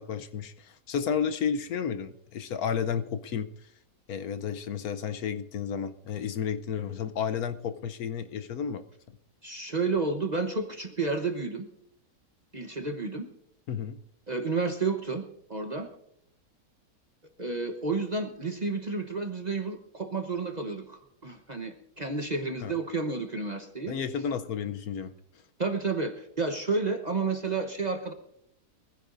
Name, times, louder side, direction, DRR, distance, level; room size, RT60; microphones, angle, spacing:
voice 1, 0.0-3.5 4.1-8.8 13.7-14.0 22.6-22.7 23.9-25.1, left 7 dB, 70° left, 10 dB, 1.2 m, -32 dB
voice 2, 9.4-11.7 12.5-13.3 14.3-15.2 15.5-15.9 17.4-24.0 25.6-28.1, right 3 dB, 30° right, 5 dB, 1.0 m, -31 dB
23.5 x 15.5 x 2.6 m, 0.72 s
omnidirectional pair, 1.7 m